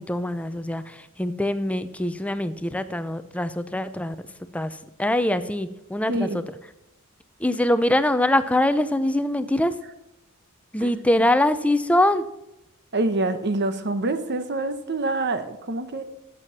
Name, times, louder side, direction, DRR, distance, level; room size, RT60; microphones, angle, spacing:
voice 1, 0.0-4.2 4.5-6.4 7.4-9.7 10.7-12.3, left 1 dB, 5° left, 12 dB, 0.5 m, -23 dB
voice 2, 6.1-6.4 10.8-10.9 12.9-16.0, right 2 dB, 50° right, 10 dB, 1.0 m, -26 dB
12.0 x 7.8 x 5.8 m, 0.88 s
head